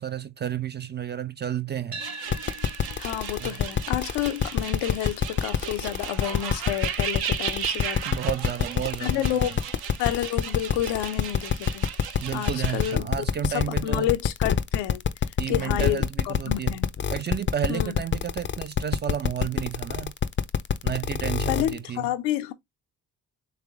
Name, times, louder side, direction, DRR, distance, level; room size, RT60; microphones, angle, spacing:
voice 1, 0.0-2.0 3.4-3.6 8.1-9.5 12.2-14.1 15.4-16.8 17.1-20.1 20.8-22.1, right 9 dB, 25° right, 0.4 m, -31 dB
sound 1, 1.9-10.1, right 3 dB, 40° right, 1.2 m, -46 dB
sound 2, 2.0-13.0, right 9 dB, 60° right, 0.7 m, -36 dB
sound 3, 2.3-21.8, left 7 dB, 30° left, 0.5 m, -25 dB
voice 2, 3.0-8.1 9.0-9.6 10.0-11.9 12.3-15.0 15.5-16.9 17.7-18.0 21.5-22.5, left 12 dB, 80° left, 0.6 m, -30 dB
3.4 x 3.3 x 3.4 m
hypercardioid pair, 50°, 41 cm